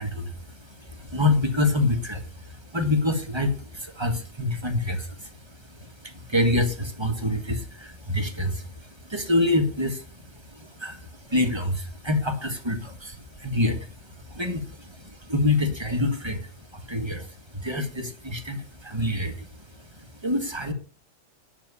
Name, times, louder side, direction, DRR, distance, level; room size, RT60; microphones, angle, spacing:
voice 1, 0.0-20.7, left 2 dB, 20° right, 4 dB, 1.7 m, -27 dB
9.9 x 6.7 x 8.3 m, 0.42 s
omnidirectional pair, 1.3 m